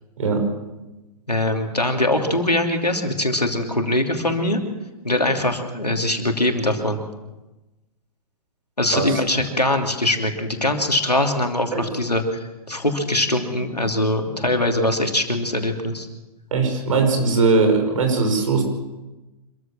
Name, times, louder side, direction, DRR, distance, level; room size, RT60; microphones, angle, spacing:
voice 1, 1.3-4.6 5.0-7.0 8.8-12.4 12.7-16.1, left 1 dB, 90° left, 4 dB, 3.0 m, -22 dB
voice 2, 16.5-18.6, right 4 dB, 55° right, 5 dB, 6.0 m, -20 dB
26.0 x 14.5 x 7.3 m, 1.1 s
figure-of-eight pair, 115°, 20 cm